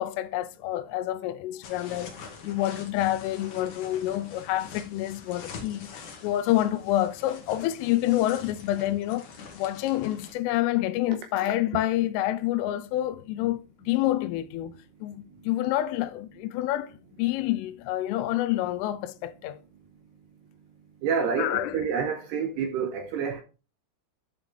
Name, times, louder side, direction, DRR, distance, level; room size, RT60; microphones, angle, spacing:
voice 1, 0.0-2.1 2.4-9.3 9.5-19.6 21.4-21.9, left 14 dB, 85° left, 3.2 m, -28 dB
sound 1, 1.6-10.3, left 6 dB, 60° left, 2.0 m, -45 dB
voice 2, 21.0-23.4, right 6 dB, 80° right, 2.5 m, -28 dB
11.0 x 5.1 x 3.2 m
omnidirectional pair, 5.7 m